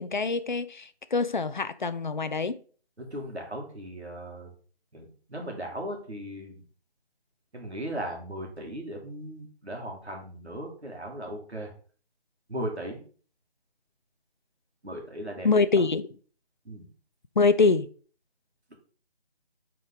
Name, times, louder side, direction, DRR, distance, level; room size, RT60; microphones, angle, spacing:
voice 1, 0.0-2.6 15.4-16.1 17.4-17.9, left 4 dB, 50° left, 0.5 m, -24 dB
voice 2, 3.0-4.5 4.9-6.6 7.5-11.7 12.5-13.0 14.8-15.5 16.6-16.8, right 1 dB, 90° right, 2.5 m, -37 dB
6.1 x 4.6 x 3.9 m
figure-of-eight pair, 160°, 32 cm